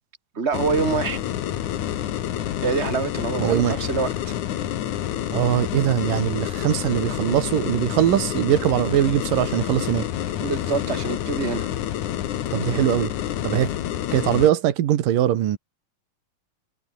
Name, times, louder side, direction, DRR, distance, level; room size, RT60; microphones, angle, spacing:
voice 1, 0.3-1.2 2.6-4.3 10.4-11.7, right 5 dB, 20° right, 2.8 m, -26 dB
sound 1, 0.5-14.5, left 11 dB, 70° left, 2.8 m, -28 dB
voice 2, 3.4-3.8 5.3-10.1 12.5-13.1 13.4-13.7 14.1-15.6, right 12 dB, 90° right, 3.2 m, -21 dB
omnidirectional pair, 3.7 m